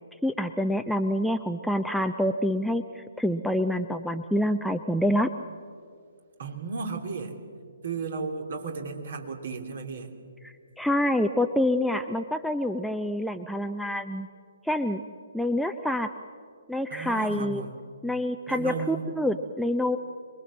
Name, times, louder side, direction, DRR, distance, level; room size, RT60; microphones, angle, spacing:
voice 1, 0.2-5.3 10.4-14.3 14.6-15.0 15.3-16.1 16.7-17.6 18.0-20.0, left 1 dB, ahead, 6 dB, 0.6 m, -27 dB
voice 2, 6.4-7.4 7.8-10.1 16.9-17.7 18.5-19.1, right 5 dB, 50° right, 4 dB, 3.0 m, -34 dB
26.5 x 21.5 x 7.5 m, 2.2 s
figure-of-eight pair, 130°, 0 cm